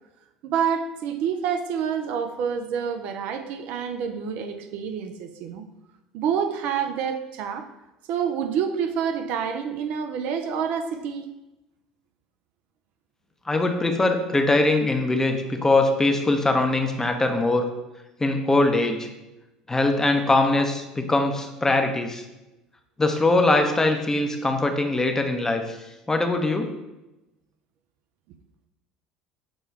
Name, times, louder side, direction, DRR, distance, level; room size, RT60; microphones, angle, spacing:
voice 1, 0.4-5.7 6.1-7.7 8.1-11.3, right 7 dB, 60° right, 7 dB, 0.4 m, -27 dB
voice 2, 13.5-17.7 18.2-19.1 19.7-22.2 23.0-25.6 26.1-26.7, left 2 dB, 15° left, 5 dB, 0.6 m, -22 dB
6.1 x 2.2 x 3.2 m, 0.98 s
hypercardioid pair, 65°, 3 cm